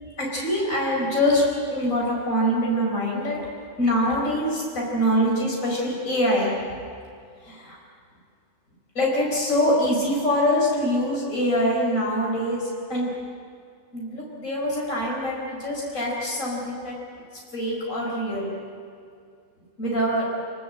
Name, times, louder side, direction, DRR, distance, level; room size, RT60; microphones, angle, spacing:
voice 1, 0.2-3.4 3.8-6.5 7.4-7.8 8.9-13.1 13.9-16.9 17.5-18.5 19.8-20.3, equal, 80° left, -3 dB, 5.2 m, -24 dB
27.5 x 19.0 x 7.8 m, 2.3 s
omnidirectional pair, 1.4 m